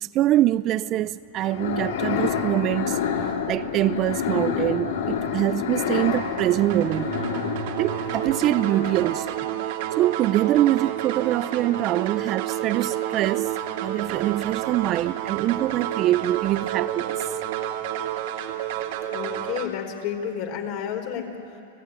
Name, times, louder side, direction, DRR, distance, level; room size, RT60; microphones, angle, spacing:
voice 1, 0.0-7.1 7.8-9.4 10.0-13.5 13.8-17.2, right 14 dB, 35° right, 0.5 m, -24 dB
sound 1, 1.4-9.4, left 7 dB, 80° left, 3.0 m, -28 dB
sound 2, 6.0-19.7, right 11 dB, 60° right, 2.4 m, -30 dB
voice 2, 19.1-21.6, left 8 dB, 50° left, 4.6 m, -31 dB
30.0 x 17.5 x 9.8 m
hypercardioid pair, 130°, 0 cm